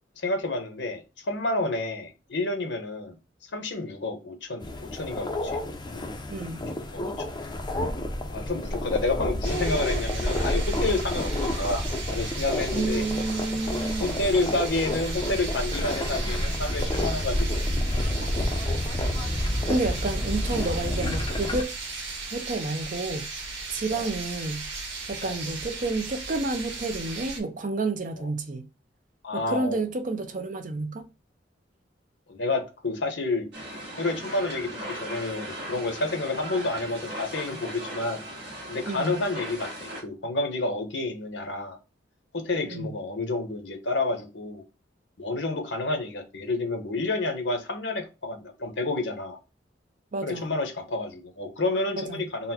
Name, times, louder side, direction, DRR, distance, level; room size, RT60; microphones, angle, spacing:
voice 1, 0.2-3.2 3.5-5.6 5.9-6.1 6.9-7.2 8.3-13.0 14.0-17.7 18.2-18.5 23.9-24.1 25.2-25.4 28.2-28.3 29.2-29.8 32.3-33.5 34.0-38.2 38.7-41.8 42.3-44.6 45.2-49.4 50.2-52.5, left 2 dB, 70° left, 1.0 m, -29 dB
sound 1, 4.6-21.6, left 1 dB, 25° left, 0.6 m, -29 dB
voice 2, 6.3-6.6 12.7-14.2 19.7-21.7 22.3-23.3 23.7-24.7 25.1-28.7 29.3-31.1 38.9-39.2 42.6-42.9 50.1-50.5 52.0-52.2, right 2 dB, 45° right, 0.6 m, -30 dB
sound 2, 9.4-27.4, right 3 dB, 85° right, 1.4 m, -37 dB
sound 3, 33.5-40.0, right 1 dB, 70° right, 1.3 m, -38 dB
4.0 x 2.1 x 4.2 m
head